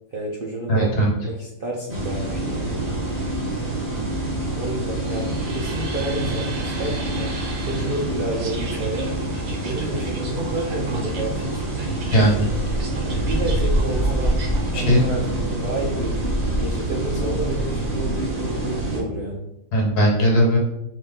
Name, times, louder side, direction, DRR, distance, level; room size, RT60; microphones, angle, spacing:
voice 1, 0.1-0.9 1.2-2.8 4.5-9.1 9.6-11.7 13.0-14.4 14.7-19.4, right 2 dB, 55° right, -2 dB, 0.6 m, -30 dB
voice 2, 0.7-1.1 12.1-12.5 14.7-15.2 19.7-20.6, equal, 70° left, -2 dB, 1.8 m, -18 dB
sound 1, 1.9-19.0, right 1 dB, 25° right, 1.2 m, -26 dB
sound 2, 4.9-14.7, right 3 dB, 85° right, 1.5 m, -39 dB
5.0 x 2.8 x 3.7 m, 0.86 s
omnidirectional pair, 1.8 m